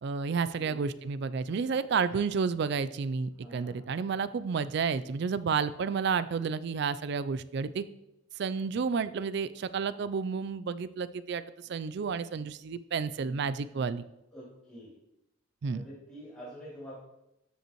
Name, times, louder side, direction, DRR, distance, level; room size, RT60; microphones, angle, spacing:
voice 1, 0.0-7.8 8.4-14.0 15.6-15.9, right 5 dB, 55° right, 14 dB, 0.3 m, -31 dB
voice 2, 3.4-3.9 14.3-14.9 15.7-16.9, equal, 10° left, -10 dB, 3.3 m, -47 dB
13.0 x 5.4 x 3.0 m, 0.87 s
head